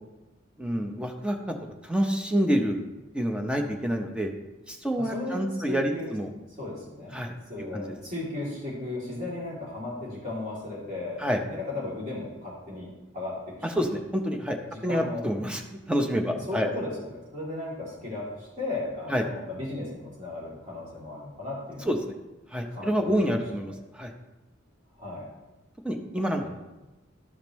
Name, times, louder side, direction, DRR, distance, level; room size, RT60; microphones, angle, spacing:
voice 1, 0.6-1.6 1.8-2.8 3.1-4.3 4.7-6.3 7.1-7.3 7.7-7.9 11.2-11.4 13.6-15.6 15.9-16.7 19.1-19.2 21.9-22.0 22.5-24.1 25.8-26.5, equal, 5° right, 3 dB, 0.7 m, -27 dB
voice 2, 5.0-5.4 5.7-6.1 6.6-7.2 7.5-11.2 11.5-13.9 14.7-15.2 16.5-16.9 17.3-21.9 22.7-23.4 25.0-25.3 26.4-26.5, left 2 dB, 35° right, -7 dB, 2.9 m, -36 dB
12.5 x 5.1 x 3.1 m, 1.1 s
head